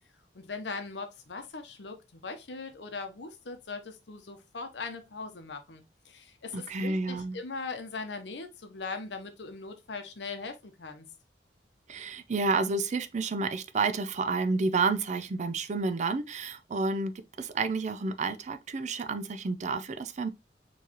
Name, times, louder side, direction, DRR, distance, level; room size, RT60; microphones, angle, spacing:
voice 1, 0.3-11.1, left 4 dB, 75° left, 0.9 m, -40 dB
voice 2, 6.5-7.4 11.9-17.1 17.4-20.3, right 3 dB, 40° right, 0.4 m, -30 dB
4.6 x 3.2 x 2.9 m
head